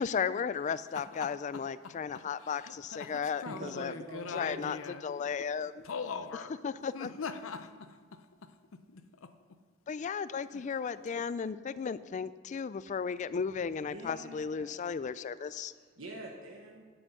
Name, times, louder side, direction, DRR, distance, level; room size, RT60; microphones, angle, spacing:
voice 1, 0.0-3.9 4.3-4.8 5.0-5.8 6.6-7.1 9.9-15.7, left 6 dB, 35° left, 16 dB, 0.3 m, -35 dB
voice 2, 0.9-5.0 5.8-6.5 6.9-9.3 10.5-10.7, left 5 dB, 80° left, 10 dB, 0.6 m, -43 dB
voice 3, 3.5-4.7 13.9-14.8 15.1-16.8, right 1 dB, 75° right, 0 dB, 1.1 m, -46 dB
9.7 x 7.8 x 6.6 m, 1.6 s
head